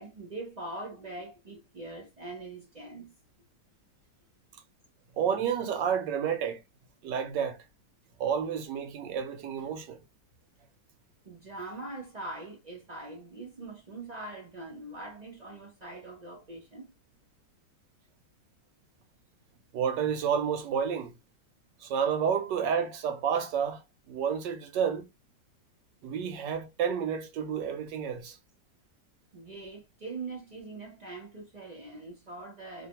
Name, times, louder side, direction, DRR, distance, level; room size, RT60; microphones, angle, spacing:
voice 1, 0.0-3.2 11.2-16.9 29.3-32.9, right 2 dB, 60° right, 0.4 m, -42 dB
voice 2, 5.2-6.6 7.0-7.6 8.2-10.0 19.7-21.1 21.8-23.8 24.1-25.1 26.0-28.4, right 7 dB, 80° right, 1.3 m, -30 dB
3.1 x 2.2 x 2.8 m
omnidirectional pair, 1.9 m